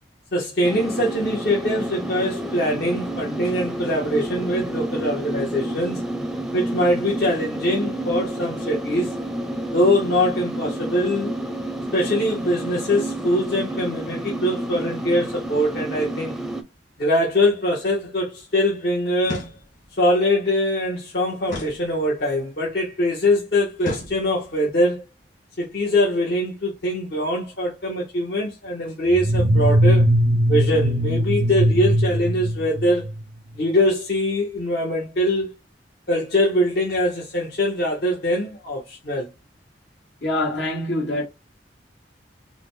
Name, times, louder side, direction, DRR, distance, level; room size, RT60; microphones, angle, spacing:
voice 1, 0.3-6.0 6.5-9.1 9.7-11.3 11.9-16.4 17.0-19.5 20.0-25.0 25.6-30.0 30.5-33.1 33.5-35.5 36.1-39.3, left 1 dB, 65° left, 1.1 m, -23 dB
sound 1, 0.6-16.6, right 1 dB, 5° right, 0.5 m, -29 dB
sound 2, 19.2-20.0 21.4-22.4 23.8-24.6, left 1 dB, 45° left, 1.8 m, -35 dB
sound 3, 29.1-33.2, equal, 60° right, 0.5 m, -19 dB
voice 2, 40.2-41.2, left 1 dB, 80° left, 1.8 m, -24 dB
5.0 x 2.2 x 3.2 m
head